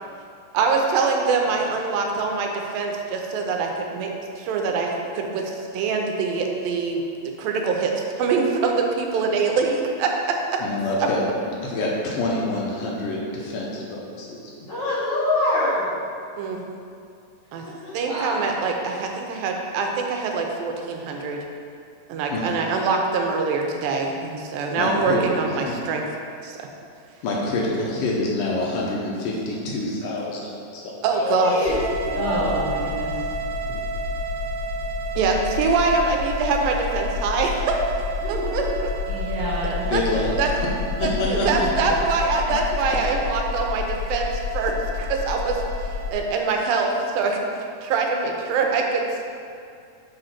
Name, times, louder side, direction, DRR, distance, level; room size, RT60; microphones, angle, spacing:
voice 1, 0.5-7.0 7.4-10.6 11.0-11.1 16.4-16.6 17.5-17.6 17.9-21.4 22.1-26.1 26.4-26.7 31.0-31.8 35.2-37.8 38.3-38.7 39.6-40.0 40.4-40.5 41.0-45.6 46.1-47.4 47.8-49.2, right 4 dB, 85° right, 2 dB, 2.4 m, -24 dB
voice 2, 10.6-11.2 11.6-14.5 22.3-22.4 24.8-25.2 27.2-31.0 39.9-40.3 41.0-41.7, left 2 dB, 75° left, -3 dB, 2.3 m, -26 dB
voice 3, 14.7-15.9 17.6-18.0 31.1-31.7, left 2 dB, 50° left, -11 dB, 2.3 m, -23 dB
voice 4, 18.0-18.5 32.1-33.1 38.2-38.6 39.1-39.8 41.5-41.6, right 1 dB, 65° right, -5 dB, 2.6 m, -28 dB
sound 1, 31.6-46.1, left 2 dB, 40° right, 0.8 m, -29 dB
6.8 x 3.9 x 5.7 m, 2.4 s
omnidirectional pair, 4.1 m